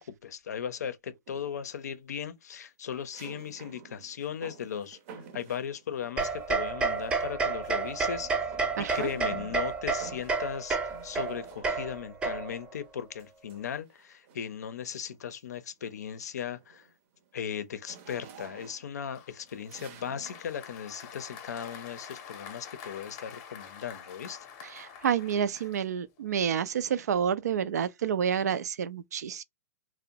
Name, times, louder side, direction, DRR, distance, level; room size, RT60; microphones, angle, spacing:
voice 1, 0.0-5.0 5.3-8.3 8.8-16.9 17.3-24.5, left 8 dB, 80° left, 0.5 m, -37 dB
sound 1, 1.3-1.8 3.1-6.5 6.8-7.4 7.6-12.1 13.2-14.6 15.1-15.4 15.7-20.5, right 7 dB, 55° right, 0.7 m, -51 dB
sound 2, 6.2-12.7, right 4 dB, 10° right, 0.4 m, -30 dB
voice 2, 8.8-9.1 24.6-29.4, right 8 dB, 80° right, 0.4 m, -29 dB
Applause, 19.1-26.3, left 7 dB, 35° left, 0.6 m, -47 dB
2.6 x 2.0 x 2.8 m
hypercardioid pair, 135°, 9 cm